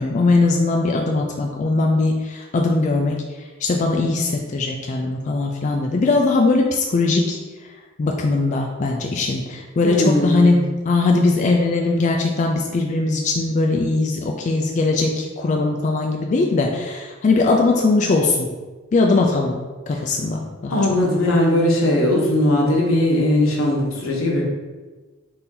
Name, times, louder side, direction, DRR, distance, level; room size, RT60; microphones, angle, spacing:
voice 1, 0.0-7.4 8.0-18.5 18.9-19.6 19.9-20.7, left 3 dB, 40° left, 1 dB, 0.3 m, -20 dB
voice 2, 9.8-10.6 19.9-20.0 20.7-24.4, left 1 dB, 85° left, -1 dB, 1.0 m, -19 dB
4.2 x 2.7 x 3.8 m, 1.3 s
head